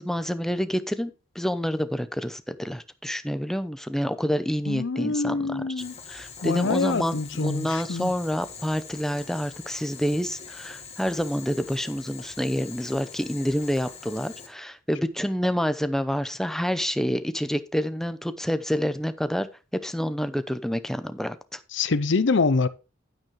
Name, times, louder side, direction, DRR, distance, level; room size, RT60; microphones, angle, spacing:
voice 1, 0.0-19.5 19.7-21.6, equal, ahead, 0.6 m, -28 dB
voice 2, 4.7-5.9 6.4-8.1 21.7-22.7, left 4 dB, 65° left, 0.6 m, -25 dB
Boiling, 5.8-14.5, left 6 dB, 35° left, 1.7 m, -44 dB
9.6 x 9.2 x 3.2 m
head